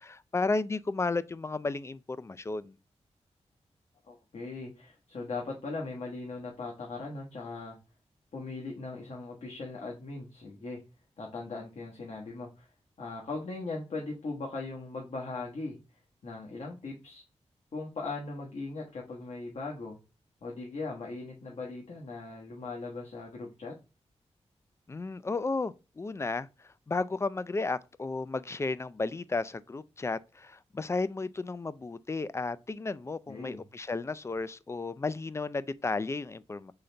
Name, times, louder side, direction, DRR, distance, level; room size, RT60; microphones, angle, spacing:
voice 1, 0.0-2.8 24.9-26.5 26.9-36.7, left 3 dB, 25° left, 0.3 m, -33 dB
voice 2, 4.1-7.8 8.3-10.8 11.2-12.7 13.0-15.8 16.2-17.2 17.7-20.0 20.4-23.7 33.3-33.6, left 3 dB, 65° left, 1.2 m, -39 dB
3.9 x 3.3 x 3.9 m
cardioid pair, 75°, 12 cm